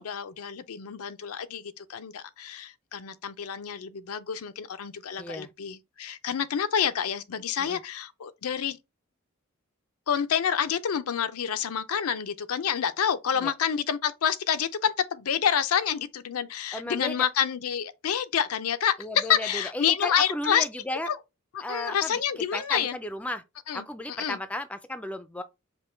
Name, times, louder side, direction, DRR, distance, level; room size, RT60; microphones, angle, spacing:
voice 1, 0.0-8.8 10.1-20.6 21.1-21.2 21.5-23.0 23.7-24.4, left 8 dB, 80° left, 0.5 m, -28 dB
voice 2, 5.2-5.5 7.6-7.8 13.4-13.5 16.7-17.3 19.0-21.1 21.6-22.2 22.5-23.4 23.7-25.4, left 1 dB, 5° left, 0.3 m, -34 dB
5.3 x 2.2 x 4.3 m
head